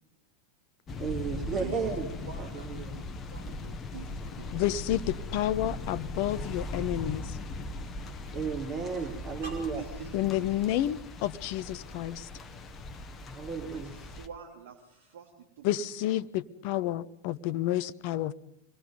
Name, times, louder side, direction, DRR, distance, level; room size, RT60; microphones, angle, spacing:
sound 1, 0.9-14.3, left 2 dB, 25° left, 1.3 m, -39 dB
voice 1, 1.0-2.1 2.5-2.9 8.3-9.8 13.3-13.9, right 5 dB, 30° right, 0 dB, 4.1 m, -33 dB
voice 2, 1.5-1.8 2.3-3.0 3.3-4.6 9.4-10.9 13.6-15.7, right 6 dB, 55° right, 1 dB, 3.1 m, -47 dB
voice 3, 4.5-7.4 10.1-12.3 15.6-18.3, left 13 dB, 45° left, 17 dB, 0.9 m, -30 dB
26.0 x 19.5 x 5.4 m, 0.74 s
figure-of-eight pair, 90°, 0 cm